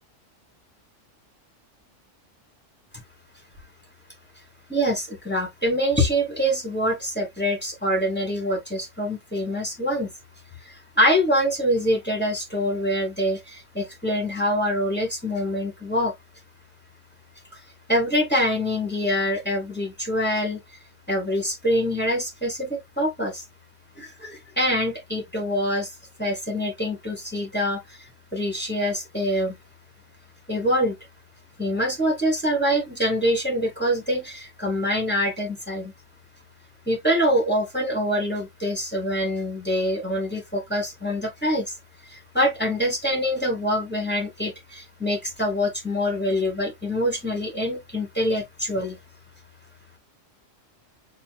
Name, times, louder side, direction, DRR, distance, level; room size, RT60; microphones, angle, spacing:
voice 1, 4.7-10.1 10.6-16.1 17.5-17.6 17.9-20.6 21.1-23.4 24.0-25.9 26.2-28.0 28.3-29.6 30.5-31.0 31.6-35.9 36.9-41.7 42.1-49.0, equal, 10° left, 1.6 m, -25 dB
6.8 x 2.5 x 2.3 m
omnidirectional pair, 1.3 m